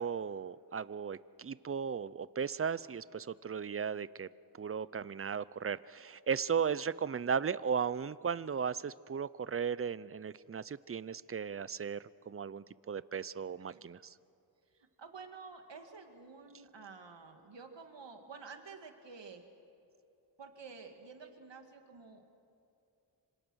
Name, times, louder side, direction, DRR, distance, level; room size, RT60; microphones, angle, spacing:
voice 1, 0.0-4.3 4.6-14.1, right 6 dB, 30° right, 18 dB, 0.5 m, -36 dB
voice 2, 15.0-19.4 20.4-22.3, right 4 dB, 80° right, 5 dB, 2.2 m, -50 dB
26.5 x 26.0 x 6.3 m, 2.6 s
wide cardioid pair, 65°, 43 cm